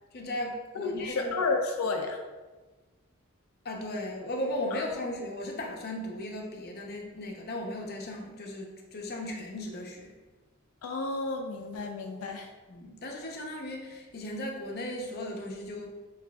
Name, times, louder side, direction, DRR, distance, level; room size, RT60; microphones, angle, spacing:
voice 1, 0.1-1.3 3.6-10.1 12.7-15.9, left 1 dB, 50° left, 0 dB, 0.7 m, -36 dB
voice 2, 0.8-2.2 4.7-4.8 10.8-12.5, left 3 dB, 90° left, 2 dB, 0.4 m, -31 dB
7.2 x 2.4 x 2.3 m, 1.2 s
head